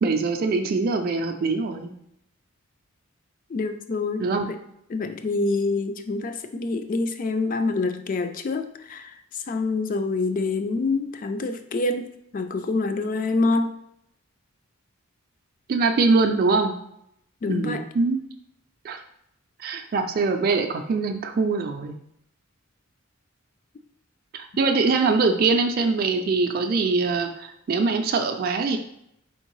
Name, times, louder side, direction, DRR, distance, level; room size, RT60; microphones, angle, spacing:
voice 1, 0.0-1.9 4.2-4.5 15.7-16.7 17.5-18.2 18.8-19.0 19.6-21.9 24.3-28.8, right 4 dB, 45° right, 4 dB, 0.3 m, -23 dB
voice 2, 3.5-4.6 4.9-13.7 17.4-17.8, left 3 dB, 40° left, 8 dB, 0.3 m, -26 dB
4.4 x 3.6 x 3.0 m, 0.77 s
head